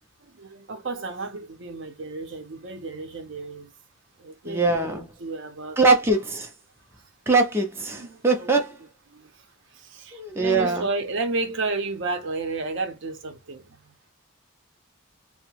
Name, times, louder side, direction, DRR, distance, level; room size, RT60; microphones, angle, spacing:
voice 1, 0.2-3.7 4.2-5.8 7.9-8.5 9.1-9.3 9.7-13.8, right 3 dB, 60° right, 0.6 m, -32 dB
voice 2, 4.4-5.1 5.8-6.5 7.3-8.8 10.1-10.9, right 3 dB, 10° right, 0.4 m, -22 dB
2.7 x 2.1 x 2.8 m
head